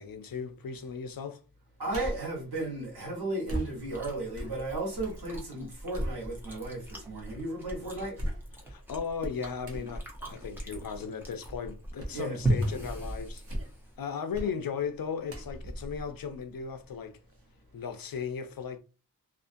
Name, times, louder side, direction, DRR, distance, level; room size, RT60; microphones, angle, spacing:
voice 1, 0.0-1.4 8.7-13.4 14.0-17.2 17.7-18.8, left 6 dB, 65° left, 0.5 m, -36 dB
voice 2, 1.8-8.2 12.1-12.4, right 2 dB, 90° right, 1.2 m, -35 dB
sound 1, 1.9-2.4 3.5-5.2 5.6-6.7 7.2-7.3 8.1-8.8 9.6-10.0 12.0-12.2 12.6-12.9 13.3-13.9 14.3-14.6 15.3-17.0 17.3-17.4, equal, 40° right, 0.8 m, -38 dB
Chewing mastication, 3.8-14.0, right 1 dB, 5° right, 0.8 m, -37 dB
2.6 x 2.4 x 2.5 m
wide cardioid pair, 80°, 37 cm